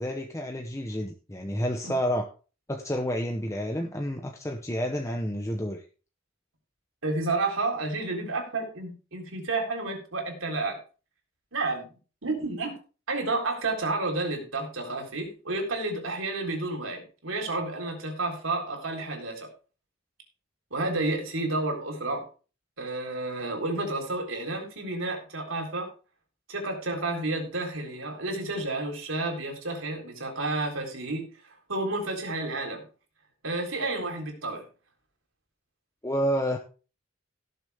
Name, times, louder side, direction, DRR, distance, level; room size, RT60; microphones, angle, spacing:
voice 1, 0.0-2.3 2.7-5.8 36.0-36.6, equal, 15° left, 3 dB, 0.9 m, -29 dB
voice 2, 7.0-10.8 11.5-11.9 12.2-12.8 13.1-19.5 20.7-22.2 22.8-25.9 26.5-32.8 33.4-34.6, right 2 dB, 85° right, 2 dB, 4.0 m, -31 dB
17.5 x 6.8 x 3.6 m, 0.36 s
head